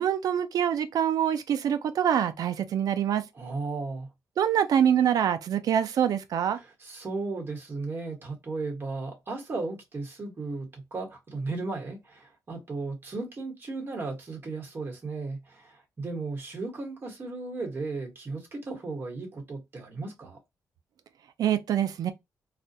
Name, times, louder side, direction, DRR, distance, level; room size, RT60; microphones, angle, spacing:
voice 1, 0.0-3.2 4.4-6.6 21.4-22.1, right 9 dB, 70° right, 0.4 m, -25 dB
voice 2, 3.3-4.1 6.5-20.4, right 3 dB, 35° right, 1.1 m, -35 dB
2.4 x 2.1 x 2.7 m
cardioid pair, 125°, 7 cm